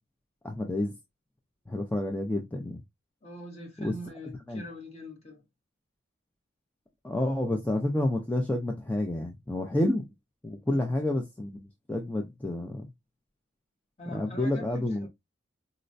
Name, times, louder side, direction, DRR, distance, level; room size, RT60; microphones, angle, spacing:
voice 1, 0.4-0.9 1.7-2.8 3.8-3.9 4.5-4.6 7.0-10.1 10.4-12.8 14.1-15.1, left 1 dB, 10° left, 0.4 m, -29 dB
voice 2, 3.2-5.4 10.6-10.9 14.0-15.1, equal, 35° left, 1.0 m, -43 dB
3.9 x 2.1 x 2.5 m
head